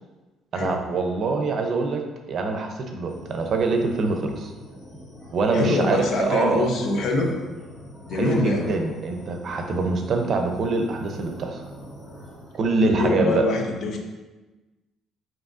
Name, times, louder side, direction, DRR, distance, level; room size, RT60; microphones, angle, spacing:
voice 1, 0.5-4.5 5.3-6.7 8.1-11.6 12.5-13.4, right 3 dB, 50° right, 3 dB, 0.6 m, -24 dB
sound 1, 3.1-12.6, left 1 dB, 25° left, 1.4 m, -43 dB
voice 2, 5.5-7.3 8.1-8.8 12.8-14.0, left 2 dB, 60° left, 2 dB, 0.6 m, -24 dB
5.1 x 2.9 x 2.5 m, 1.2 s
cardioid pair, 105°, 0 cm